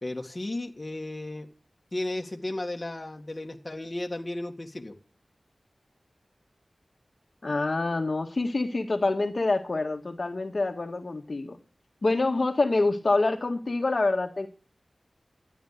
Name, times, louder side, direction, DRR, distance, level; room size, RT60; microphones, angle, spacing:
voice 1, 0.0-1.5 1.9-5.0, left 1 dB, 30° left, 2 dB, 2.0 m, -34 dB
voice 2, 7.4-11.6 12.0-14.5, left 3 dB, 55° left, 4 dB, 1.8 m, -26 dB
12.5 x 9.3 x 6.7 m, 0.37 s
wide cardioid pair, 70°, 0 cm